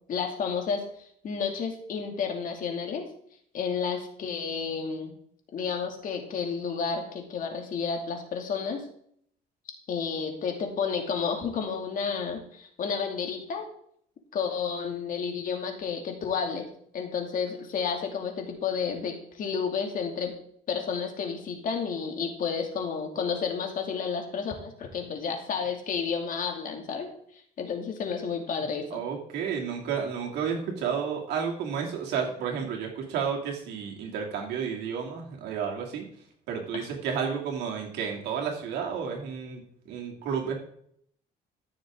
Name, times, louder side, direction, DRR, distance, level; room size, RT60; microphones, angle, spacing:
voice 1, 0.1-3.0 3.5-5.1 5.5-8.9 9.9-13.7 14.3-16.7 16.9-20.3 20.7-27.1 27.6-29.0 36.7-36.9, left 6 dB, 55° left, 3 dB, 2.4 m, -31 dB
voice 2, 28.9-36.1 36.5-39.6 39.9-40.6, right 7 dB, 80° right, 0 dB, 2.8 m, -31 dB
14.5 x 6.7 x 3.8 m, 0.65 s
cardioid pair, 110°, 17 cm